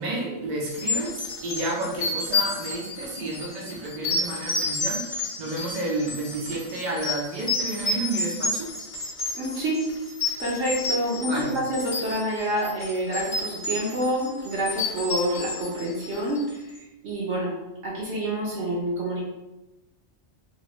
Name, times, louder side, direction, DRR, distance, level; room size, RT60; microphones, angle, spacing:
voice 1, 0.0-8.7 11.3-11.6, right 2 dB, 50° right, -4 dB, 0.6 m, -31 dB
sound 1, 0.7-16.5, left 3 dB, 45° left, 0.7 m, -30 dB
voice 2, 9.3-9.9 10.4-16.6 17.0-17.5 17.8-19.2, right 1 dB, 70° right, -6 dB, 1.1 m, -27 dB
2.9 x 2.5 x 3.0 m, 0.99 s
omnidirectional pair, 1.2 m